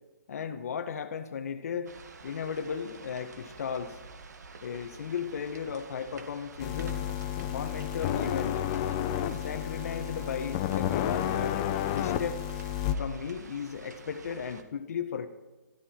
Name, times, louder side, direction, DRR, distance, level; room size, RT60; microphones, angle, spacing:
voice 1, 0.3-1.9 2.2-4.0 4.6-7.0 7.5-8.6 9.4-12.4 13.0-15.3, left 7 dB, 55° left, 6 dB, 1.4 m, -35 dB
sound 1, 1.8-14.6, right 4 dB, 65° right, 2.1 m, -49 dB
sound 2, 6.6-12.9, left 11 dB, 20° left, 0.8 m, -31 dB
23.5 x 13.5 x 4.5 m, 1.1 s
hypercardioid pair, 165°, 10 cm